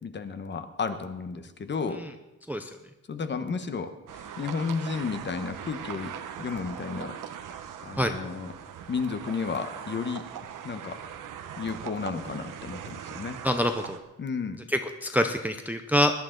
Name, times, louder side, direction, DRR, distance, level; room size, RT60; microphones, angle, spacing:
voice 1, 0.0-2.0 3.1-6.1 6.4-7.2 7.8-8.5 8.9-10.2 10.6-11.0 11.6-13.4 14.2-14.6, left 5 dB, 35° left, 9 dB, 1.0 m, -32 dB
sound 1, 4.1-14.0, right 8 dB, 90° right, 1.0 m, -40 dB
voice 2, 13.4-14.0 14.7-16.1, equal, 5° right, 6 dB, 0.5 m, -25 dB
20.5 x 11.0 x 3.9 m, 0.99 s
wide cardioid pair, 165°, 31 cm